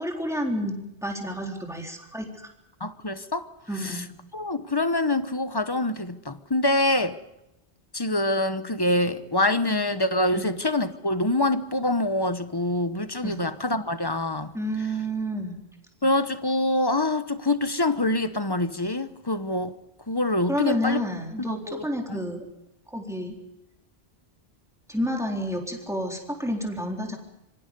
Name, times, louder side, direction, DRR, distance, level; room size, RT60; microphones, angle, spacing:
voice 1, 0.0-2.5 3.7-4.1 10.3-10.4 13.2-13.4 14.5-15.6 20.5-22.5 22.9-23.4 24.9-27.2, equal, 5° right, 3.9 m, -30 dB
voice 2, 2.8-3.5 3.8-4.0 4.3-7.2 7.9-14.5 16.0-19.7 20.1-21.0 21.4-22.2, left 1 dB, 25° left, 1.0 m, -25 dB
26.5 x 23.5 x 5.4 m
omnidirectional pair, 1.1 m